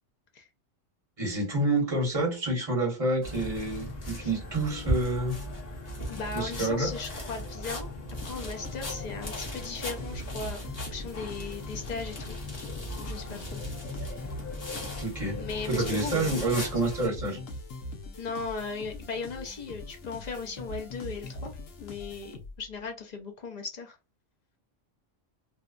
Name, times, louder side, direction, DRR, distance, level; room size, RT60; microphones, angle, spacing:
voice 1, 1.2-5.4 6.3-6.9 15.0-17.4, right 2 dB, 30° right, 1.1 m, -28 dB
sound 1, 3.2-17.1, left 1 dB, 35° left, 0.9 m, -37 dB
voice 2, 6.1-7.9 8.2-12.4 13.0-13.6 15.4-16.4 18.2-24.0, left 4 dB, 50° left, 0.5 m, -37 dB
sound 2, 8.2-22.8, left 2 dB, 85° left, 1.0 m, -43 dB
2.7 x 2.2 x 2.4 m
omnidirectional pair, 1.3 m